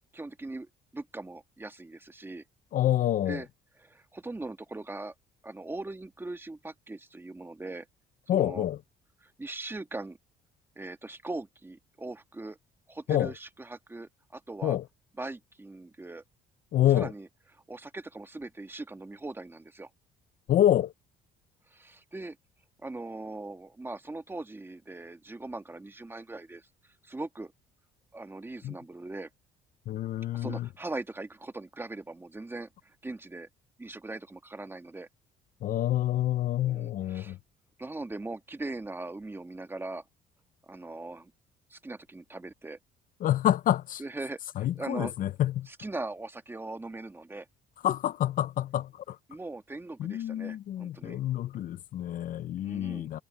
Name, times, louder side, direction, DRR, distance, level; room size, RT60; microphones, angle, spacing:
voice 1, 0.1-2.4 3.3-3.5 3.8-5.1 5.4-7.8 8.3-8.7 9.2-10.2 10.7-12.6 12.9-14.8 15.2-16.2 16.9-17.3 17.5-19.9 21.7-22.4 22.8-26.7 27.0-27.5 28.1-29.3 30.3-33.5 33.8-35.1 36.7-37.4 37.8-40.0 40.7-41.3 41.7-42.8 44.0-45.1 45.7-47.5 49.3-51.2 52.6-53.1, right 2 dB, 15° right, 1.7 m, -40 dB
voice 2, 2.7-3.4 8.3-8.8 13.1-13.3 14.6-14.8 16.7-17.1 20.5-20.9 28.6-28.7 29.9-30.7 35.6-37.4 43.2-44.0 44.6-45.7 47.8-49.2 50.0-53.2, left 12 dB, 55° left, 0.5 m, -27 dB
cardioid pair, 110°, 17 cm